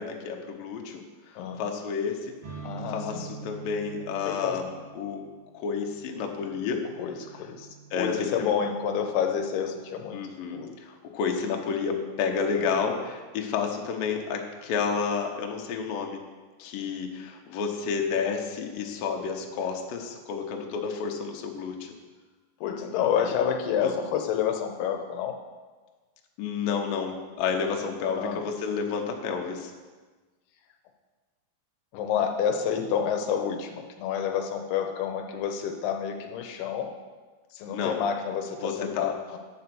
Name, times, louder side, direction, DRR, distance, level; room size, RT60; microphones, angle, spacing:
voice 1, 0.0-2.3 2.9-5.2 5.5-6.8 7.9-8.5 10.1-16.2 16.6-21.9 23.2-23.3 23.8-24.0 26.4-29.7 37.7-38.0 38.6-39.1, left 6 dB, 70° left, 2 dB, 2.5 m, -30 dB
sound 1, 2.4-10.0, right 6 dB, 45° right, 2.6 m, -46 dB
voice 2, 2.6-3.3 4.2-4.6 7.0-7.7 8.0-10.2 10.5-10.8 12.6-12.8 22.6-25.4 28.2-28.4 31.9-36.9 37.5-39.4, left 8 dB, 85° left, 4 dB, 2.8 m, -29 dB
9.6 x 5.6 x 7.7 m, 1.3 s
omnidirectional pair, 4.5 m